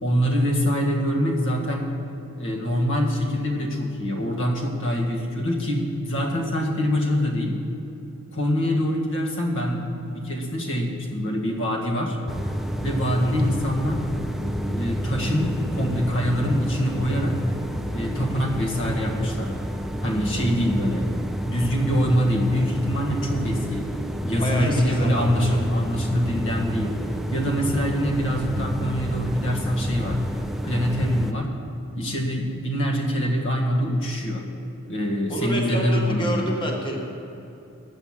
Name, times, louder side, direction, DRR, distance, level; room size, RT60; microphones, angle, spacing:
voice 1, 0.0-1.9 2.4-7.6 8.3-12.2 12.8-14.0 14.7-17.4 17.9-19.5 20.0-21.1 21.4-23.9 24.2-26.9 27.3-30.2 30.6-31.5 32.0-34.4 34.9-36.6, equal, 60° left, 0 dB, 1.7 m, -24 dB
sound 1, 12.3-31.3, equal, ahead, 0.5 m, -29 dB
voice 2, 20.1-20.7 24.3-25.5 35.3-37.0, right 1 dB, 20° left, -1 dB, 1.7 m, -29 dB
10.0 x 8.1 x 7.4 m, 2.9 s
head